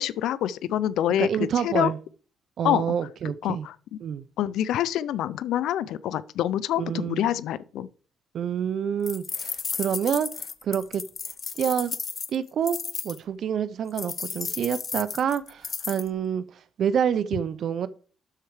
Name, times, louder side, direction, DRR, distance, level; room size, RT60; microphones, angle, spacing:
voice 1, 0.0-1.3 1.6-1.9 2.6-2.8 3.4-3.7 4.4-7.9, left 11 dB, 85° left, 0.4 m, -26 dB
voice 2, 1.2-2.0 2.6-3.7 4.0-4.2 6.8-7.2 8.3-11.0 11.6-11.9 12.3-12.8 13.0-17.9, right 8 dB, 65° right, 0.6 m, -27 dB
sound 1, 9.1-13.2 14.0-16.1, left 5 dB, 45° left, 0.8 m, -33 dB
12.0 x 4.5 x 4.8 m
cardioid pair, 90°, 0 cm